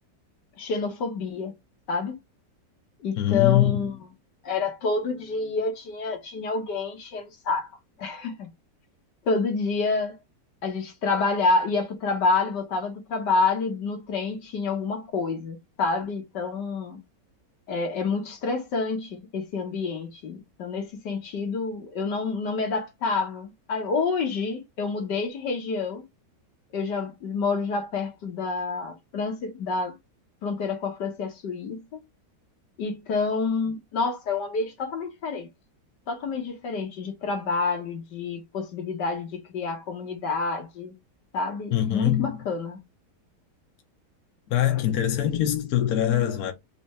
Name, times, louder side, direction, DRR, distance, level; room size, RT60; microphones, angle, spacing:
voice 1, 0.6-1.5 1.9-2.2 3.0-4.0 4.4-7.7 8.0-8.5 9.3-10.2 10.6-17.0 17.7-26.0 26.7-30.0 30.4-32.0 32.8-35.5 36.1-40.9 41.3-42.8, left 4 dB, 80° left, 1.9 m, -28 dB
voice 2, 3.2-3.9 41.7-42.4 44.5-46.5, left 11 dB, 65° left, 1.3 m, -23 dB
4.2 x 3.4 x 3.3 m
omnidirectional pair, 1.8 m